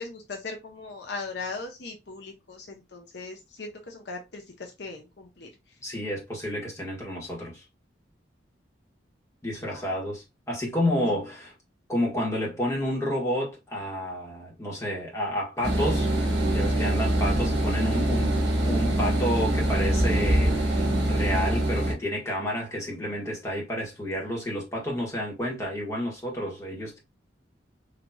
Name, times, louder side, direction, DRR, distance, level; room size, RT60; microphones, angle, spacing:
voice 1, 0.0-5.5 9.6-9.8, left 3 dB, 60° left, 0.7 m, -39 dB
voice 2, 5.8-7.6 9.4-11.5 11.9-16.1 16.5-27.0, equal, 15° left, 1.3 m, -30 dB
sound 1, 15.6-21.9, right 1 dB, 65° right, 1.5 m, -24 dB
4.0 x 2.9 x 2.2 m
head